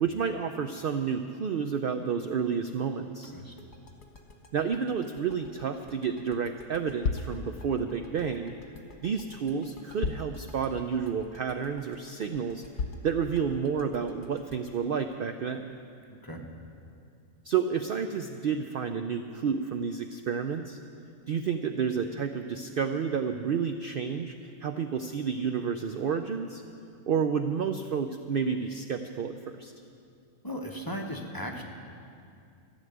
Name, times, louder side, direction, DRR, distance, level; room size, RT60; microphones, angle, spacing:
voice 1, 0.0-3.3 4.5-8.5 9.0-12.6 13.0-15.7 17.4-20.8 21.3-26.6 27.1-29.7, right 6 dB, 75° right, 7 dB, 0.5 m, -30 dB
sound 1, 3.6-16.3, left 3 dB, 50° left, 1.5 m, -53 dB
sound 2, 7.0-7.4 8.9-9.0 10.0-10.4 10.9-11.0 11.6-11.7 12.8-13.1, left 5 dB, 75° left, 1.2 m, -31 dB
voice 2, 16.1-16.5 30.4-31.6, equal, 15° left, 0 dB, 1.0 m, -37 dB
14.5 x 7.2 x 9.3 m, 2.4 s
omnidirectional pair, 1.5 m